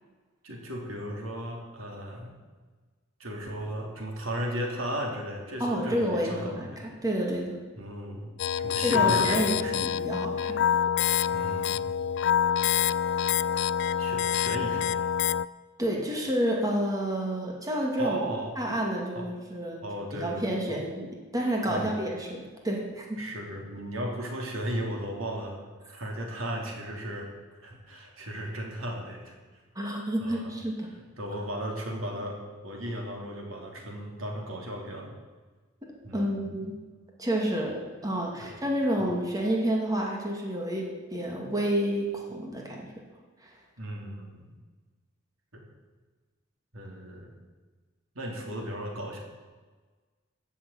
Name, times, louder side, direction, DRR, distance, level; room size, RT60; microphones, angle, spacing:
voice 1, 0.4-2.4 3.2-6.9 7.7-8.3 8.6-9.8 11.3-11.9 14.0-14.9 18.0-18.6 19.1-19.3 19.8-20.8 21.7-21.9 23.1-25.6 25.9-27.3 27.6-29.6 30.2-30.5 31.2-35.1 36.0-36.5 38.4-38.5 39.0-39.2 43.8-44.5 45.5-45.6 46.7-47.3 48.1-49.2, right 1 dB, 80° right, 0 dB, 3.3 m, -36 dB
voice 2, 5.6-7.6 8.8-10.6 15.8-18.2 18.6-19.8 20.1-23.2 29.8-30.9 36.1-36.7 37.2-37.8 38.0-42.8 43.4-43.5, right 1 dB, 20° right, -1 dB, 2.3 m, -29 dB
sound 1, 8.4-15.5, left 9 dB, 60° left, 0.3 m, -26 dB
14.5 x 7.3 x 8.8 m, 1.4 s
head